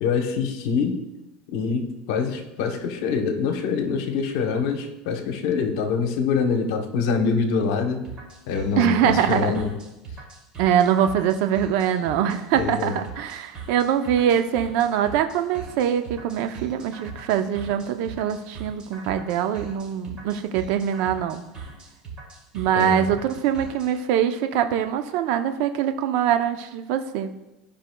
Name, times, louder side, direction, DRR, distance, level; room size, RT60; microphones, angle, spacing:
voice 1, 0.0-1.0 1.5-8.0 8.5-9.7 12.5-12.9 22.7-23.1, left 5 dB, 75° left, 6 dB, 0.9 m, -25 dB
sound 1, 8.0-23.9, right 4 dB, 35° right, 2.4 m, -40 dB
voice 2, 8.8-9.5 10.6-21.4 22.5-27.3, right 9 dB, 70° right, 8 dB, 0.5 m, -23 dB
13.0 x 5.1 x 2.2 m, 0.98 s
supercardioid pair, 110°, 3 cm